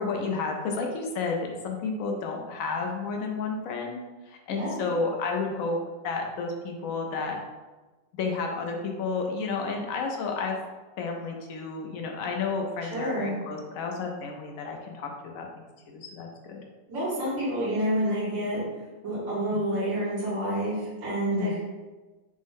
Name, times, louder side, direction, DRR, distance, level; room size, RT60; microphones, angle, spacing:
voice 1, 0.0-5.8 6.0-7.3 8.2-10.6 11.0-16.6 19.5-19.7 21.3-21.6, left 4 dB, 70° left, 2 dB, 0.8 m, -31 dB
voice 2, 12.8-13.3 16.9-18.6 19.0-21.6, right 1 dB, 80° right, -11 dB, 2.1 m, -28 dB
5.1 x 2.1 x 3.5 m, 1.2 s
omnidirectional pair, 2.0 m